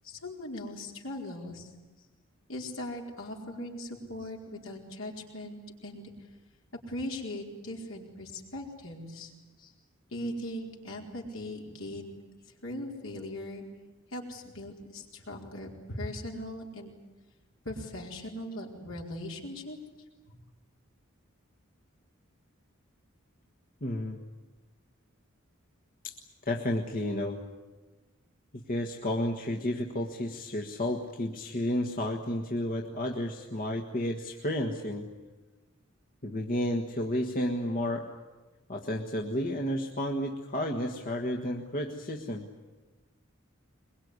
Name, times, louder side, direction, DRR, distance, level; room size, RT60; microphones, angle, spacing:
voice 1, 0.0-1.7 2.5-6.1 6.9-9.3 10.1-12.1 12.6-13.6 14.1-16.9 17.6-19.8 20.3-20.4, left 1 dB, 75° left, 0 dB, 4.5 m, -39 dB
voice 2, 23.8-24.2 26.0-26.1 26.4-27.4 28.5-35.1 36.2-38.1 38.7-42.5, left 1 dB, 45° left, 1 dB, 1.6 m, -32 dB
22.5 x 22.0 x 9.7 m, 1.2 s
head